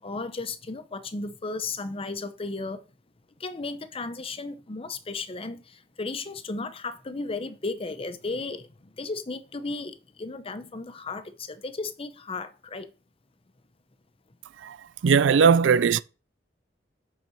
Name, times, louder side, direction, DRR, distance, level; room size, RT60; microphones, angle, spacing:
voice 1, 0.0-2.8 3.4-12.9, left 3 dB, 30° left, 0.7 m, -35 dB
voice 2, 15.0-16.0, right 6 dB, 85° right, 0.4 m, -19 dB
6.7 x 5.9 x 4.5 m
head